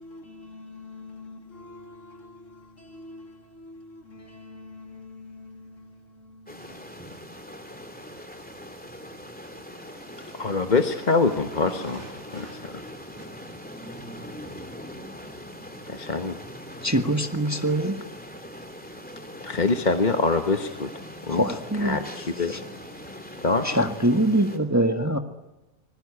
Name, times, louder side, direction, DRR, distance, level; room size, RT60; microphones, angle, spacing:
voice 1, 0.0-7.3, left 2 dB, 65° left, 3.0 m, -46 dB
sound 1, 6.5-24.6, equal, 5° left, 3.0 m, -41 dB
sound 2, 9.7-14.8, right 3 dB, 80° right, 4.6 m, -49 dB
voice 2, 10.3-12.8 15.9-16.4 19.4-20.9 21.2-21.4 21.8-22.5 23.4-23.6, left 3 dB, 35° left, 1.4 m, -25 dB
voice 3, 16.8-18.0 21.3-22.0 22.5-22.6 23.6-25.2, right 1 dB, 10° right, 1.5 m, -23 dB
26.0 x 21.0 x 9.9 m
omnidirectional pair, 1.4 m